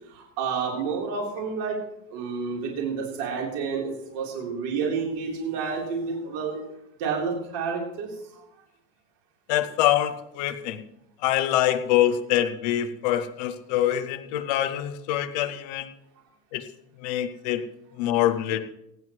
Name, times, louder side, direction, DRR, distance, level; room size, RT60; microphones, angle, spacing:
voice 1, 0.1-1.8 2.1-6.6 7.0-8.4, right 5 dB, 45° right, -2 dB, 3.7 m, -30 dB
voice 2, 9.5-10.8 11.2-15.9 16.5-16.7 17.0-17.6 18.0-18.6, left 12 dB, 30° left, 8 dB, 0.4 m, -25 dB
25.0 x 9.2 x 3.1 m, 0.84 s
supercardioid pair, 175°, 48 cm